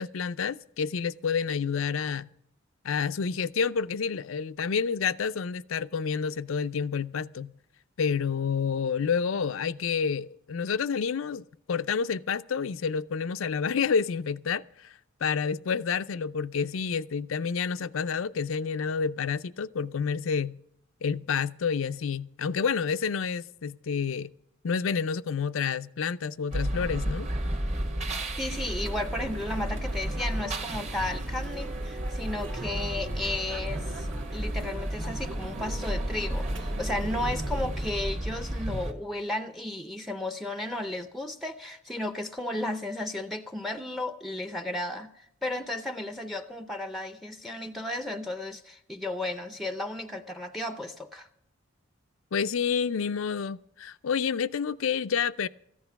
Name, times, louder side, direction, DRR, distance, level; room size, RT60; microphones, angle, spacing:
voice 1, 0.0-2.3 2.8-7.5 8.0-14.9 15.2-20.6 21.0-24.3 24.6-27.3 52.3-55.5, left 6 dB, 75° left, 0.5 m, -29 dB
sound 1, 26.5-38.9, right 1 dB, 35° right, 1.2 m, -32 dB
voice 2, 28.4-51.3, left 1 dB, ahead, 0.5 m, -34 dB
sound 2, 28.5-37.9, right 2 dB, 65° right, 1.6 m, -41 dB
14.5 x 10.0 x 5.8 m
head